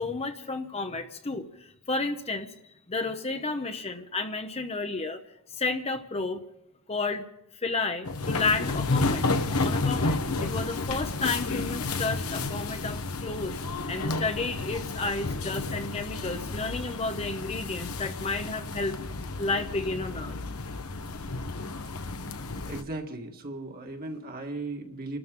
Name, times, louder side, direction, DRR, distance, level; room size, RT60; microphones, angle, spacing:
voice 1, 0.0-2.5 2.9-5.2 5.5-6.4 6.9-7.2 7.6-9.2 9.6-13.6 13.9-19.0 19.4-20.4, left 3 dB, 30° left, 7 dB, 0.8 m, -31 dB
sound 1, 8.0-22.8, left 3 dB, 80° left, 1.1 m, -31 dB
voice 2, 22.7-25.2, right 2 dB, 45° right, 3 dB, 1.8 m, -37 dB
29.0 x 13.0 x 3.8 m, 0.86 s
head